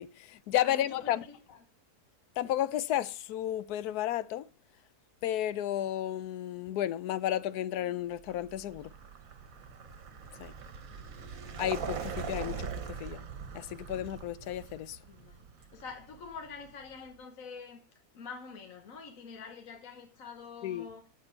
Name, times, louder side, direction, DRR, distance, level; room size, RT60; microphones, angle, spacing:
voice 1, 0.0-1.3 2.4-4.4 5.2-8.9 10.4-10.5 11.6-12.7 13.0-13.2 13.5-15.0 20.6-20.9, left 12 dB, 85° left, 1.1 m, -32 dB
voice 2, 0.6-1.6 15.1-17.8 18.1-21.0, left 5 dB, 65° left, 1.4 m, -46 dB
Vehicle, 8.2-17.0, right 6 dB, 65° right, 1.4 m, -42 dB
8.4 x 7.4 x 4.5 m
omnidirectional pair, 1.6 m